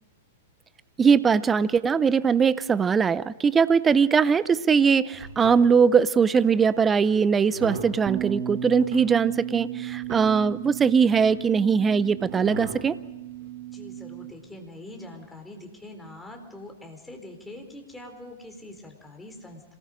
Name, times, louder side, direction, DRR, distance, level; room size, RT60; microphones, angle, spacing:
voice 1, 1.0-13.0, right 6 dB, 20° right, 17 dB, 0.7 m, -21 dB
sound 1, 5.1-5.6 6.5-6.8 7.4-8.0 8.8-9.0 9.6-9.7 9.9-10.5 11.2-11.4 12.2-12.8 13.4-13.5, right 3 dB, 55° right, 4.2 m, -37 dB
Bass guitar, 8.1-14.3, right 11 dB, 35° right, 3.5 m, -35 dB
voice 2, 13.7-19.7, left 1 dB, 5° left, 3 dB, 4.0 m, -43 dB
27.0 x 19.5 x 5.0 m, 1.0 s
figure-of-eight pair, 105°, 0 cm